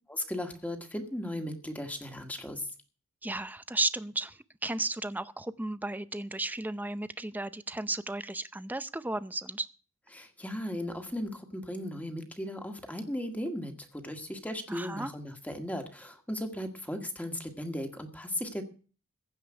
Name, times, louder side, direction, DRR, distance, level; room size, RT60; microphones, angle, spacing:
voice 1, 0.1-2.7 10.1-18.6, left 1 dB, 5° left, 5 dB, 1.6 m, -36 dB
voice 2, 3.2-9.7 14.7-15.1, right 2 dB, 10° right, 13 dB, 0.6 m, -34 dB
15.5 x 5.3 x 9.9 m, 0.39 s
head